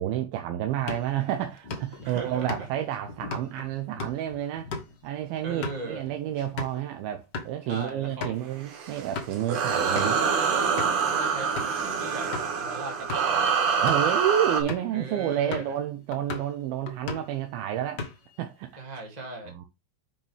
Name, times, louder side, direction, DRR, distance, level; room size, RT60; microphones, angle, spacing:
voice 1, 0.0-4.7 5.0-10.2 13.8-18.0 18.4-18.7 19.5-19.7, right 11 dB, 80° right, 2.6 m, -30 dB
sound 1, 0.8-6.8 7.2-7.5 7.9-8.4 8.9-9.4 9.9-10.2 10.8-11.1 11.6-11.8 12.3-12.5 12.9-13.4 13.7-14.1 14.7-15.0 15.5-15.8 16.1-16.5 16.9-17.4 17.7-18.4, left 4 dB, 90° left, 0.9 m, -37 dB
voice 2, 2.0-2.7 5.4-6.1 7.6-8.4 9.5-10.3 11.0-13.5 14.9-15.7 18.8-19.5, right 2 dB, 15° right, 1.3 m, -39 dB
sound 2, 8.6-14.6, right 6 dB, 60° right, 3.0 m, -26 dB
9.3 x 6.0 x 3.3 m
omnidirectional pair, 4.3 m